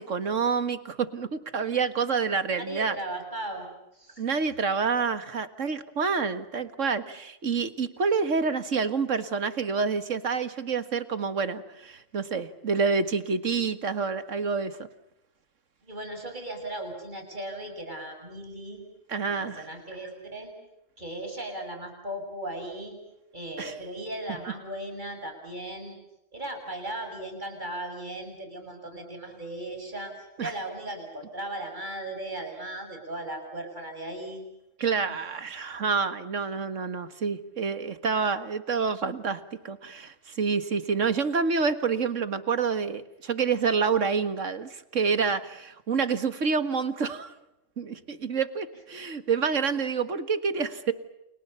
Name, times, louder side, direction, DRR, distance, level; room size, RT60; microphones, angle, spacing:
voice 1, 0.0-3.0 4.2-14.9 19.1-19.7 23.6-23.8 30.4-30.5 34.8-47.3 47.8-50.9, right 5 dB, 80° right, 11 dB, 2.1 m, -28 dB
voice 2, 2.7-3.7 3.9-4.2 15.8-18.8 19.3-20.5 21.0-23.0 23.3-26.0 26.3-34.4, right 1 dB, 40° right, 4 dB, 7.6 m, -37 dB
30.0 x 29.5 x 5.7 m, 0.88 s
omnidirectional pair, 1.3 m